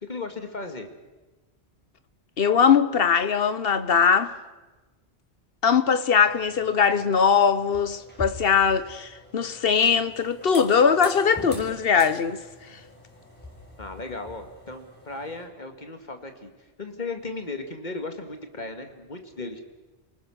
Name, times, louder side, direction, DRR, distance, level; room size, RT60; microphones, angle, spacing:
voice 1, 0.0-0.9 13.8-16.5 16.8-19.6, left 3 dB, 40° left, 2.2 m, -36 dB
voice 2, 2.4-4.3 5.6-12.4, left 6 dB, 60° left, 1.2 m, -21 dB
sound 1, 6.2-15.4, equal, 10° left, 5.6 m, -45 dB
28.5 x 19.5 x 6.4 m
omnidirectional pair, 1.1 m